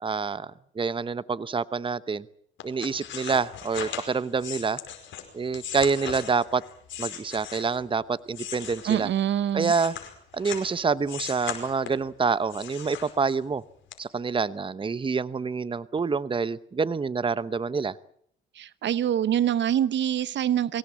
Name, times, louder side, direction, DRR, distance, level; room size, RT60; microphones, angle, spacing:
voice 1, 0.0-2.3 2.6-4.8 5.3-6.6 7.0-9.1 9.5-9.9 10.3-13.6 14.0-18.0, right 5 dB, 25° right, 16 dB, 0.9 m, -27 dB
sound 1, 2.6-7.9 8.3-10.7 11.1-12.1 12.5-13.5 13.9-14.0, left 9 dB, 70° left, 5.1 m, -38 dB
voice 2, 8.8-9.7 18.5-20.8, right 10 dB, 65° right, 16 dB, 0.9 m, -25 dB
24.0 x 17.0 x 8.7 m, 0.67 s
cardioid pair, 90°, 20 cm